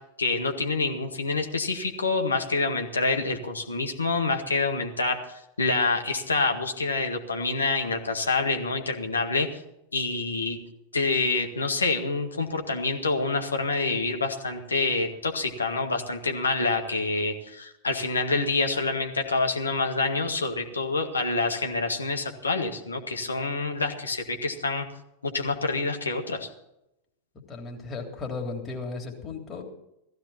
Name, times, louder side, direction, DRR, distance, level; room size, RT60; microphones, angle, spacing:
voice 1, 0.2-9.5 9.9-10.6 10.9-24.9 25.2-26.5, left 3 dB, 75° left, 4 dB, 1.9 m, -27 dB
voice 2, 27.5-29.6, left 4 dB, 20° left, 1 dB, 3.4 m, -35 dB
16.5 x 15.0 x 4.4 m, 0.82 s
figure-of-eight pair, 90°, 0 cm